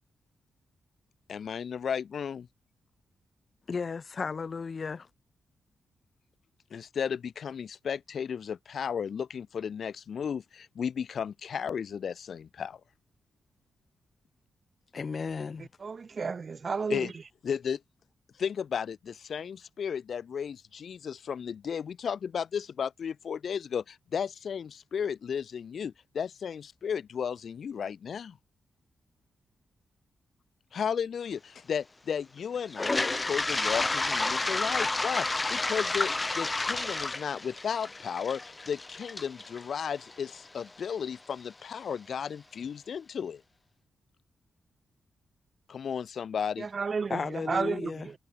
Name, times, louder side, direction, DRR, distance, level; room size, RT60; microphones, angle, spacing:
voice 1, 1.3-2.5 6.7-12.8 16.9-17.1 17.4-17.8 18.4-28.4 30.7-43.4 45.7-46.7, left 7 dB, 60° left, 2.1 m, -34 dB
voice 2, 3.7-5.1 14.9-15.7 47.1-48.1, left 5 dB, 45° left, 2.2 m, -34 dB
voice 3, 15.8-17.1 46.6-48.1, right 5 dB, 40° right, 3.6 m, -32 dB
Toilet flush, 32.7-40.6, left 2 dB, 20° left, 2.3 m, -30 dB
cardioid pair, 110°, 0 cm